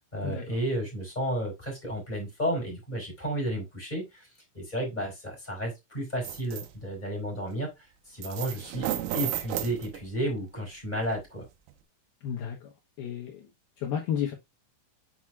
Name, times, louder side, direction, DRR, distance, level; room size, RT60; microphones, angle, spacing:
voice 1, 0.1-4.3 4.5-7.7 8.1-8.9 9.1-11.5, right 1 dB, 10° left, 3.7 m, -32 dB
sound 1, 6.2-6.7 8.2-10.3 11.0-11.2 11.7-11.8, right 12 dB, 90° right, 3.3 m, -33 dB
voice 2, 12.2-12.6 13.0-13.5 13.8-14.3, left 8 dB, 85° left, 2.1 m, -31 dB
7.2 x 6.1 x 2.4 m
omnidirectional pair, 5.9 m